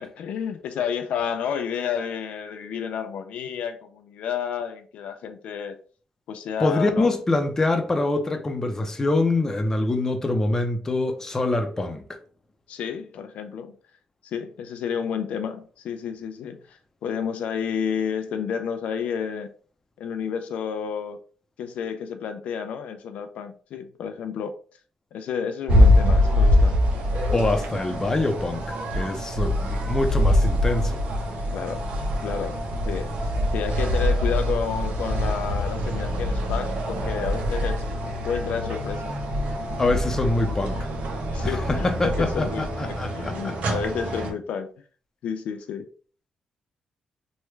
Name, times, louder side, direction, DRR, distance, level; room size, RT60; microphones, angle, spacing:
voice 1, 0.0-5.8 6.3-7.1 12.7-13.8 14.2-19.5 20.0-21.2 21.6-24.6 25.1-26.8 31.5-31.8 32.2-32.6 32.9-33.1 33.5-37.9 38.3-39.2 41.3-44.7 45.2-45.9, left 7 dB, 80° left, 0.4 m, -30 dB
voice 2, 6.6-12.2 27.3-31.0 39.8-40.9 41.4-43.7, left 2 dB, 20° left, 0.6 m, -25 dB
sound 1, 25.7-44.3, left 1 dB, 75° right, 0.7 m, -24 dB
3.1 x 2.3 x 3.1 m
cardioid pair, 95°, 2 cm